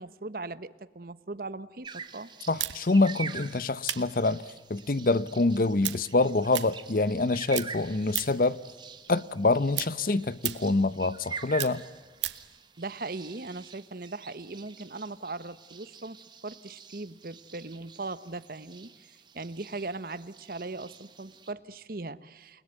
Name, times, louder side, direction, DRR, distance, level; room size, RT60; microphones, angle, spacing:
voice 1, 0.0-2.3 12.8-22.6, right 3 dB, 50° right, 1.0 m, -39 dB
sound 1, 1.8-21.5, right 5 dB, 25° right, 1.3 m, -46 dB
voice 2, 2.5-4.4 4.7-8.6 9.1-11.8, left 2 dB, 50° left, 0.8 m, -26 dB
sound 2, 2.6-7.3 7.5-8.5 8.9-12.5, right 14 dB, 85° right, 1.6 m, -36 dB
30.0 x 21.0 x 9.1 m
head